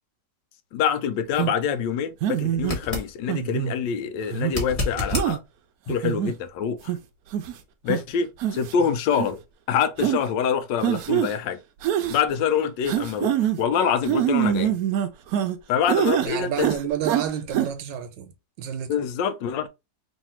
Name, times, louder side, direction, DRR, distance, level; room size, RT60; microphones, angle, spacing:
voice 1, 0.7-5.4 5.9-6.9 7.8-9.4 9.7-11.6 12.1-14.8 15.7-16.7 18.9-19.7, left 7 dB, 85° left, 1.3 m, -25 dB
sound 1, 1.4-1.5 2.2-2.8 3.3-3.8 4.3-4.5 5.1-5.4 5.9-6.3 6.9-7.0 7.3-7.5 7.9-8.0 8.4-8.7 9.1-9.3 10.0-10.2 10.8-11.3 11.8-12.2 12.9-13.6 14.1-15.6 15.9-16.3 16.6-17.2 17.5-17.7, right 11 dB, 70° right, 1.0 m, -24 dB
sound 2, 2.6-3.1 4.5-5.3 8.3-8.4, left 2 dB, 25° left, 1.2 m, -28 dB
voice 2, 16.2-18.9, right 9 dB, 85° right, 1.4 m, -30 dB
3.3 x 2.7 x 4.2 m
omnidirectional pair, 1.9 m